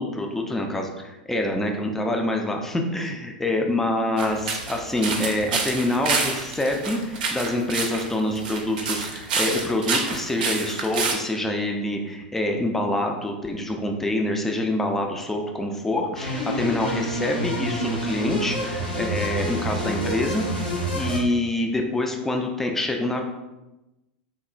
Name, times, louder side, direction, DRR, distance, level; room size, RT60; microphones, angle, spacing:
voice 1, 0.0-23.2, left 1 dB, 5° left, 2 dB, 0.3 m, -26 dB
sound 1, 4.2-11.1, right 4 dB, 60° right, 0.5 m, -28 dB
sound 2, 16.1-21.2, equal, 85° left, 0.8 m, -28 dB
3.1 x 2.0 x 2.4 m, 1.0 s
figure-of-eight pair, 90°, 5 cm